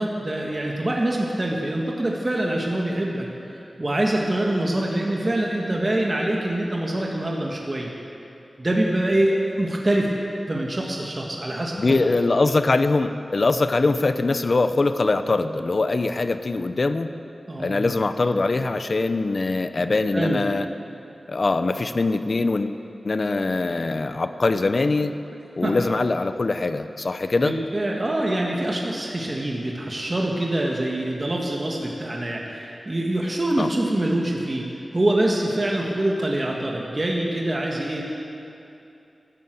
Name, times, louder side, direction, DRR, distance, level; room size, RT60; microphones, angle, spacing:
voice 1, 0.0-3.3 3.5-7.9 8.6-10.1 10.5-12.1 17.5-17.9 19.8-20.4 25.6-25.8 27.4-38.1, right 1 dB, 35° right, -2 dB, 1.7 m, -25 dB
voice 2, 11.8-17.1 17.6-20.7 21.3-22.8 23.0-25.1 25.6-27.6 29.3-29.4 33.6-33.7, left 3 dB, 55° left, 10 dB, 0.7 m, -22 dB
13.0 x 12.5 x 7.9 m, 2.7 s
wide cardioid pair, 85°, 0 cm